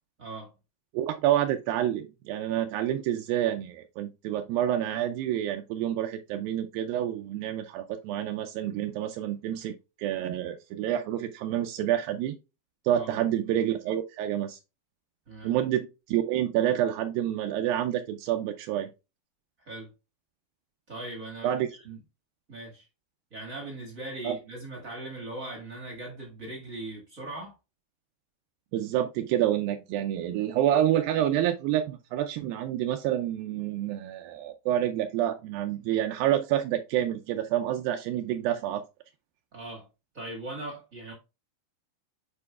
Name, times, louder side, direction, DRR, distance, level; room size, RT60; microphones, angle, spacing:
voice 1, 0.2-0.5 12.9-13.1 15.3-15.5 19.6-19.9 20.9-22.0 22.5-22.9 23.3-27.6 39.5-39.9 40.1-41.1, right 2 dB, 45° right, 1.0 m, -39 dB
voice 2, 0.9-12.4 12.9-14.6 15.4-18.9 21.4-21.7 24.2-24.4 28.7-38.8, right 11 dB, 80° right, 2.3 m, -28 dB
9.9 x 4.4 x 2.3 m
omnidirectional pair, 4.4 m